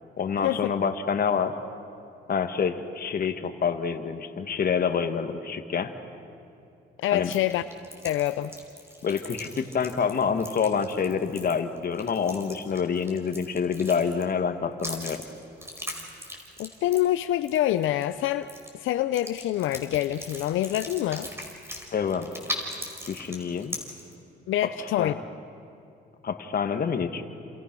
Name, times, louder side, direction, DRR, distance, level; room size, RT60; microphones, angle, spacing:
voice 1, 0.2-1.5 2.3-5.9 7.1-7.3 9.0-15.2 21.9-22.3 23.1-23.8 25.0-25.2 26.2-27.2, left 6 dB, 50° left, 7 dB, 1.8 m, -27 dB
voice 2, 7.0-7.6 8.0-8.5 16.6-21.3 24.5-25.1, left 13 dB, 80° left, 11 dB, 0.6 m, -26 dB
sound 1, 7.2-14.4 14.8-18.2 18.4-18.7 19.1-24.1, equal, 10° right, 5.0 m, -39 dB
29.0 x 27.5 x 6.2 m, 2.6 s
cardioid pair, 90°, 20 cm